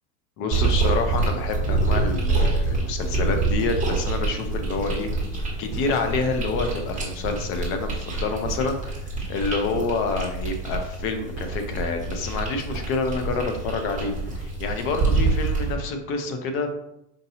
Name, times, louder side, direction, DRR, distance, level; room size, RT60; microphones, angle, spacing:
voice 1, 0.4-5.1 5.6-8.8 9.3-16.7, left 4 dB, 30° left, 6 dB, 0.4 m, -28 dB
sound 1, 0.5-15.7, right 3 dB, 15° right, 1.3 m, -26 dB
5.1 x 2.7 x 2.7 m, 0.82 s
hypercardioid pair, 125°, 48 cm